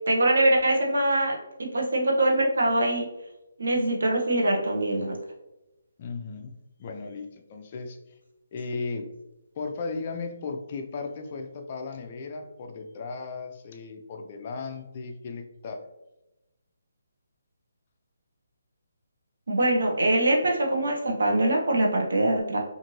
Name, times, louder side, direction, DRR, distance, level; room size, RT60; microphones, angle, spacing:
voice 1, 0.1-3.1 3.6-5.2 19.5-22.6, right 1 dB, 80° right, 0 dB, 0.8 m, -23 dB
voice 2, 6.0-6.5 6.8-8.0 8.5-9.1 9.6-15.9, left 4 dB, 30° left, 4 dB, 0.4 m, -36 dB
2.6 x 2.5 x 3.0 m, 0.93 s
hypercardioid pair, 165°, 0 cm